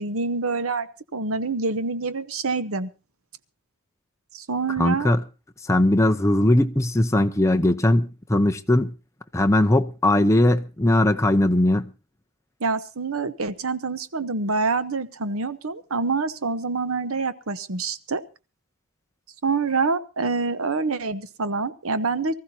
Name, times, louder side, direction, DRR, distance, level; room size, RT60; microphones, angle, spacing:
voice 1, 0.0-2.9 4.3-5.1 12.6-18.2 19.4-22.4, right 4 dB, 75° right, 1.0 m, -26 dB
voice 2, 4.8-5.2 5.7-8.9 9.3-11.9, left 1 dB, 15° left, 0.7 m, -19 dB
24.0 x 14.5 x 2.8 m
head